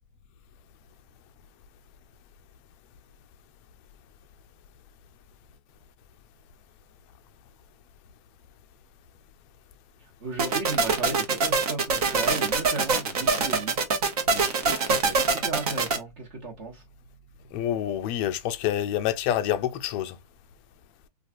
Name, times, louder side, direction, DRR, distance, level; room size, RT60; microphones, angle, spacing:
voice 1, 10.0-13.7 14.2-16.8, right 3 dB, 45° right, 1.1 m, -35 dB
sound 1, 10.4-16.0, right 4 dB, 65° right, 1.0 m, -24 dB
voice 2, 17.5-20.2, left 11 dB, 25° left, 0.3 m, -27 dB
3.2 x 2.3 x 2.5 m
hypercardioid pair, 140°, 21 cm